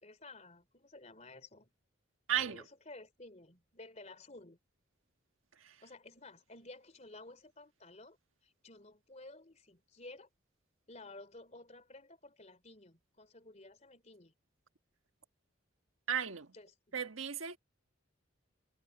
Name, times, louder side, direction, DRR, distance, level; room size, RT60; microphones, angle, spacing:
voice 1, 0.0-1.7 2.4-4.6 5.8-8.2 8.4-10.3 10.9-14.3 16.5-16.9, left 2 dB, 35° left, 3.3 m, -53 dB
voice 2, 2.3-2.6 5.6-5.8 16.1-16.5 16.9-17.6, right 9 dB, 90° right, 1.5 m, -35 dB
head